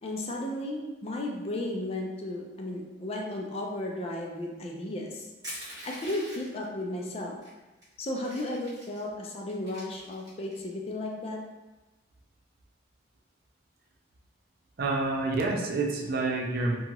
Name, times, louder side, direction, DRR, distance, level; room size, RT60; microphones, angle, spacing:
voice 1, 0.0-5.3 5.8-7.3 8.0-11.4, left 1 dB, 35° left, 0 dB, 0.4 m, -34 dB
Crushing, 5.4-6.6 7.4-7.5 7.8-9.0 9.5-10.6, equal, 20° right, 1.4 m, -43 dB
voice 2, 14.8-16.8, right 3 dB, 55° right, 0 dB, 0.4 m, -28 dB
2.8 x 2.3 x 2.9 m, 1.1 s
head